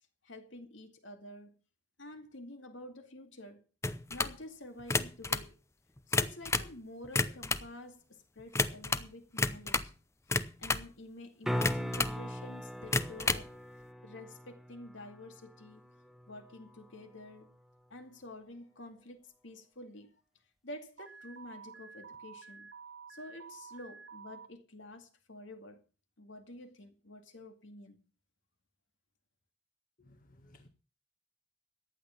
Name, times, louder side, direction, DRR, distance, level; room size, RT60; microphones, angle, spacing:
voice 1, 0.2-1.6 2.0-3.6 4.1-5.6 6.1-9.9 10.3-13.6 14.0-15.9 16.3-17.5 17.9-20.1 20.6-22.7 23.1-25.8 26.2-28.0, left 1 dB, 75° left, 2.3 m, -49 dB
sound 1, 3.8-4.4 4.8-5.5 6.0-6.8 7.0-7.7 8.5-9.1 9.4-9.9 10.3-10.9 11.6-12.2 12.8-13.5, left 3 dB, 15° left, 0.6 m, -31 dB
sound 2, 11.4-17.5 22.1-22.2, equal, ahead, 1.0 m, -40 dB
Alarm, 21.0-24.5, right 6 dB, 75° right, 1.2 m, -50 dB
voice 2, 30.0-30.7, left 1 dB, 45° left, 1.6 m, -60 dB
15.0 x 10.0 x 5.8 m
head